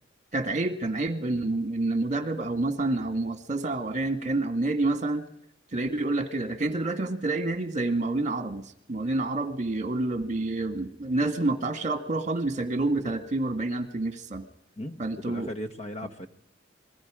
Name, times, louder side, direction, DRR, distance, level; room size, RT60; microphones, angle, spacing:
voice 1, 0.3-5.3 5.7-14.4 15.0-15.5, right 2 dB, 40° right, 8 dB, 1.8 m, -28 dB
voice 2, 14.8-16.3, equal, 35° left, 7 dB, 1.3 m, -37 dB
27.5 x 21.5 x 5.0 m, 0.72 s
head